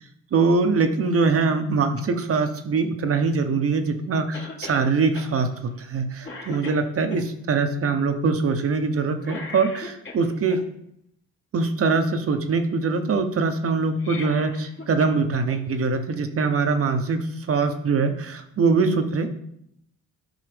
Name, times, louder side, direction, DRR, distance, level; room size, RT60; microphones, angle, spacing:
voice 1, 0.3-10.6 11.5-19.3, right 4 dB, 50° right, 7 dB, 1.1 m, -23 dB
Cough, 4.3-4.8 5.1-5.3 5.8-6.0 6.2-7.2 9.2-10.6 13.8-15.2 15.5-15.6 16.7-16.8, left 3 dB, 40° left, 2.2 m, -38 dB
12.0 x 5.4 x 3.5 m, 0.74 s
cardioid pair, 90°, 30 cm